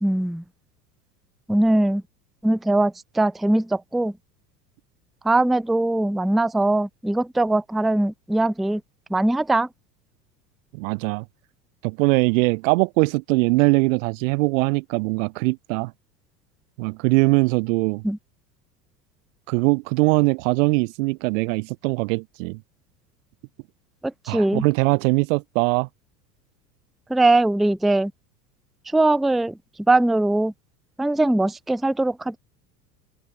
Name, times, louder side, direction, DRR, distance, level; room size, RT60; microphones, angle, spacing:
voice 1, 0.0-0.4 1.5-2.0 2.4-4.1 5.2-8.8 9.1-9.7 18.0-18.2 24.0-24.6 27.1-28.1 28.9-29.6 29.9-30.5 31.0-32.4, right 2 dB, ahead, 0.6 m, -21 dB
voice 2, 10.7-11.2 11.8-15.9 16.8-18.0 19.5-22.6 24.3-25.9, right 27 dB, 55° right, 0.9 m, -21 dB
open air
figure-of-eight pair, 80°, 49 cm